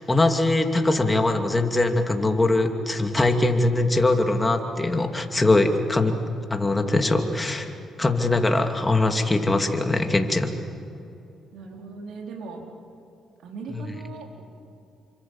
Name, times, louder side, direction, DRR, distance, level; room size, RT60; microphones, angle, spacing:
voice 1, 0.1-6.2 6.5-7.7 8.0-10.5 13.7-13.9, left 2 dB, 15° left, 4 dB, 2.6 m, -22 dB
voice 2, 11.5-12.6 13.4-14.4, right 4 dB, 80° right, 1 dB, 3.9 m, -38 dB
28.5 x 25.5 x 7.4 m, 2.8 s
cardioid pair, 90°, 0 cm